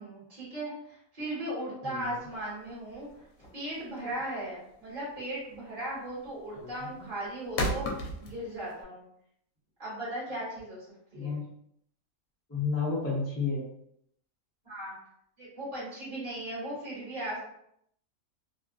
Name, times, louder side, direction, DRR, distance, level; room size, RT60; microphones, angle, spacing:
voice 1, 0.0-3.2 3.5-7.9 8.2-9.0 9.8-10.9 11.1-11.4 14.6-14.9 15.4-17.4, right 1 dB, 30° right, -9 dB, 1.5 m, -37 dB
sound 1, 2.0-8.8, left 1 dB, 80° left, 1.0 m, -36 dB
voice 2, 11.1-11.5 12.5-13.6, left 4 dB, 15° left, -6 dB, 0.6 m, -31 dB
2.9 x 2.3 x 2.3 m, 0.73 s
omnidirectional pair, 1.5 m